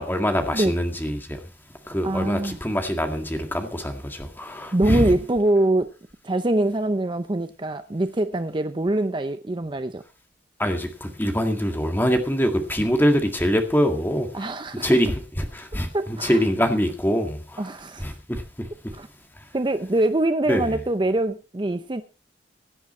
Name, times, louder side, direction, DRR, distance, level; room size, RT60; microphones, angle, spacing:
voice 1, 0.0-1.4 1.9-5.1 10.6-17.6 18.0-18.9 20.5-20.7, equal, 10° left, 1.9 m, -24 dB
voice 2, 2.0-2.6 4.7-5.9 6.2-10.0 14.3-15.0 15.9-16.4 17.6-18.1 18.9-19.1 19.5-22.0, right 1 dB, 25° right, 0.6 m, -24 dB
16.5 x 10.0 x 4.3 m
head